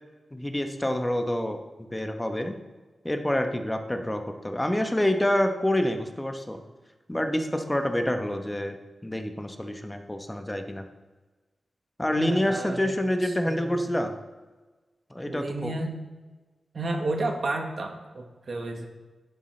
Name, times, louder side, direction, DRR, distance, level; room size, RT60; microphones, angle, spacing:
voice 1, 0.3-1.6 1.9-2.6 3.0-6.6 7.1-8.7 9.0-10.8 12.0-14.1 15.1-15.7, left 1 dB, 10° left, 5 dB, 0.9 m, -27 dB
voice 2, 12.2-12.9 13.2-14.0 15.3-16.0 16.7-18.9, right 2 dB, 55° right, 3 dB, 1.1 m, -32 dB
11.5 x 8.4 x 3.2 m, 1.3 s
wide cardioid pair, 90°, 0 cm